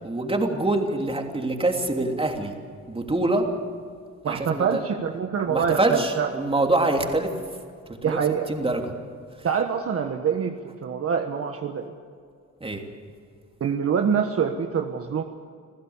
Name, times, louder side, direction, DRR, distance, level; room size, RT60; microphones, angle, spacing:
voice 1, 0.0-2.5 2.9-3.4 4.2-4.8 5.5-7.3 8.0-8.2 8.5-8.9 12.6-12.8, right 2 dB, 20° right, 2 dB, 3.1 m, -25 dB
voice 2, 4.2-6.3 8.0-8.5 9.4-11.9 13.6-15.2, right 7 dB, 50° right, 4 dB, 1.4 m, -25 dB
27.0 x 15.0 x 7.3 m, 2.1 s
cardioid pair, 90°, 30 cm